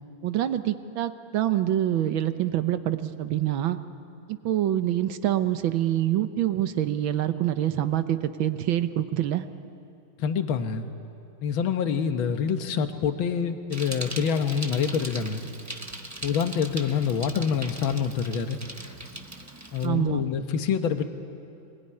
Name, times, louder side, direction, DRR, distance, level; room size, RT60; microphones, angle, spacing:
voice 1, 0.2-3.8 4.3-9.4 19.8-20.2, right 12 dB, 70° right, 10 dB, 1.6 m, -26 dB
voice 2, 10.2-10.9 11.4-15.4 16.2-18.6 19.7-21.0, left 7 dB, 70° left, 8 dB, 1.9 m, -26 dB
Bicycle, 13.7-19.9, right 2 dB, 15° right, 0.6 m, -40 dB
25.0 x 21.0 x 9.8 m, 2.6 s
omnidirectional pair, 2.3 m